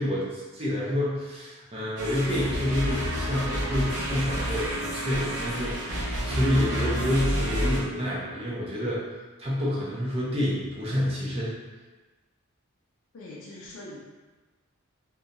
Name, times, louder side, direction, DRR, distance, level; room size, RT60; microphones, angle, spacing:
voice 1, 0.0-9.0 9.4-11.6, left 1 dB, 25° right, -6 dB, 0.5 m, -28 dB
sound 1, 2.0-7.8, equal, 90° right, 0.7 m, -29 dB
voice 2, 13.1-14.0, left 1 dB, 70° left, -5 dB, 0.4 m, -42 dB
2.8 x 2.3 x 2.6 m, 1.2 s
head